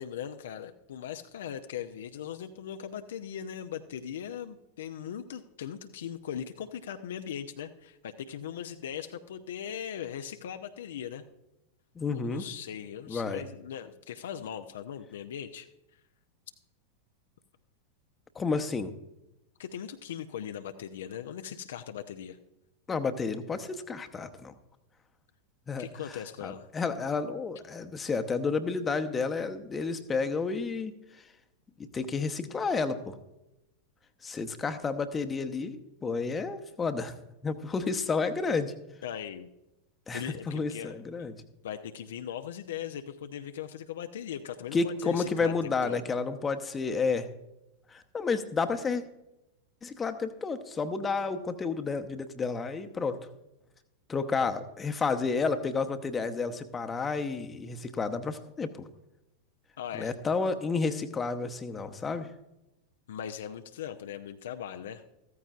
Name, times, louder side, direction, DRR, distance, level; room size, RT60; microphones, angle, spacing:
voice 1, 0.0-11.2 12.1-15.7 19.6-22.4 25.8-26.7 39.0-39.5 40.1-41.3 41.6-46.0 59.8-60.1 63.1-65.0, left 9 dB, 60° left, 7 dB, 0.6 m, -39 dB
voice 2, 12.0-12.4 13.1-13.4 18.4-18.9 22.9-24.5 25.7-25.9 26.4-30.9 31.9-33.1 34.2-37.1 37.4-38.7 40.1-41.3 44.7-47.3 47.9-49.0 49.8-53.2 54.1-58.9 59.9-62.3, left 4 dB, 15° left, 7 dB, 0.9 m, -31 dB
14.5 x 14.0 x 2.4 m, 0.91 s
figure-of-eight pair, 90°, 0 cm